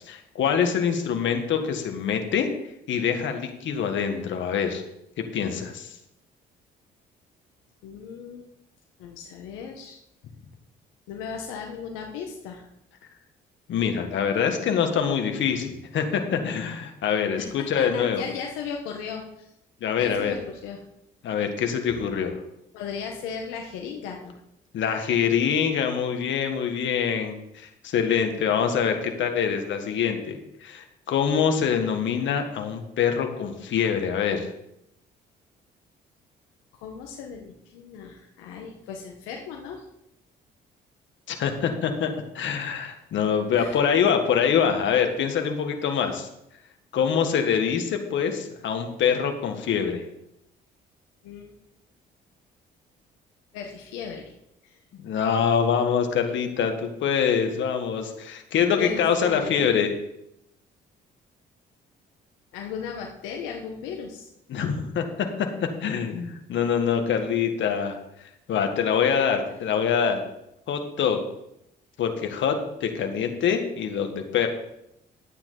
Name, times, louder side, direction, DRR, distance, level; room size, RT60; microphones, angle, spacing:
voice 1, 0.1-2.5 2.9-4.8 5.2-6.0 13.7-18.3 19.8-20.4 21.2-22.3 24.7-34.5 41.3-46.3 46.9-50.0 54.9-59.9 64.5-68.0 68.5-70.2 70.7-71.2 72.0-74.5, left 7 dB, 65° left, 5 dB, 1.8 m, -25 dB
voice 2, 7.8-8.5 9.0-10.0 11.1-12.7 17.4-17.5 17.8-19.5 19.9-20.8 22.7-24.3 36.8-39.8 43.6-43.8 51.2-51.5 53.5-54.3 54.6-54.8 58.8-59.7 62.5-64.3, left 6 dB, 85° left, 1 dB, 1.3 m, -36 dB
11.5 x 9.1 x 4.1 m, 0.81 s
supercardioid pair, 60°, 20 cm